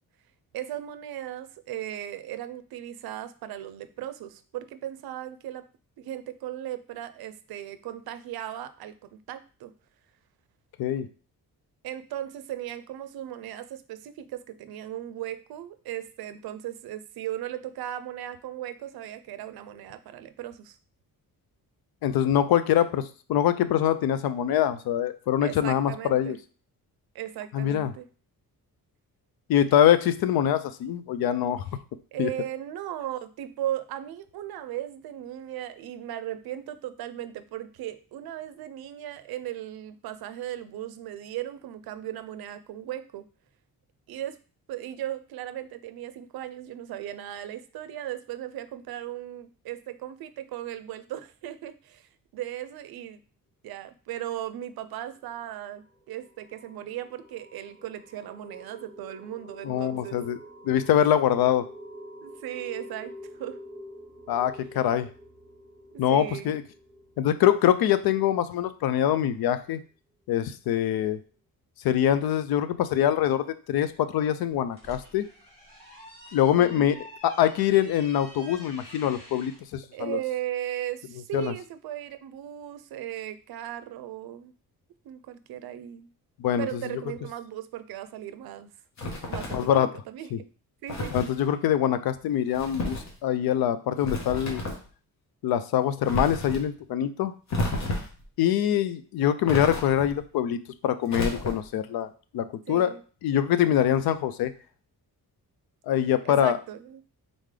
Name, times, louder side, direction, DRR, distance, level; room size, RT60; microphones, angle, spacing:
voice 1, 0.5-5.6 6.0-9.7 11.8-20.8 25.4-26.4 27.1-28.0 32.1-43.2 44.1-44.4 44.7-53.2 53.6-60.2 62.2-63.6 66.1-66.6 76.5-77.0 79.9-84.5 85.0-86.1 86.6-88.7 89.2-90.3 90.8-91.1 102.7-103.0 106.2-107.0, right 12 dB, 85° right, 12 dB, 0.5 m, -37 dB
voice 2, 22.0-23.0 23.3-26.4 27.5-27.9 29.5-31.7 32.2-32.3 59.6-60.4 60.6-61.7 64.3-65.1 66.0-66.6 67.2-69.8 70.3-71.2 71.8-75.3 76.3-77.0 77.2-80.2 81.3-81.5 86.4-86.7 89.5-89.9 90.3-90.4 91.1-94.6 95.4-97.3 98.4-102.9 103.2-104.5 105.9-106.6, left 10 dB, 80° left, 12 dB, 0.5 m, -24 dB
sound 1, 55.6-69.7, equal, ahead, 0.8 m, -48 dB
sound 2, 74.5-79.6, equal, 15° left, 1.5 m, -48 dB
sound 3, 89.0-89.7 90.9-91.3 92.5-93.1 94.0-94.9 96.1-96.6 97.5-98.2 99.5-100.2 101.1-101.8, left 1 dB, 50° left, 1.1 m, -31 dB
3.8 x 3.7 x 3.3 m, 0.38 s
wide cardioid pair, 170°, 36 cm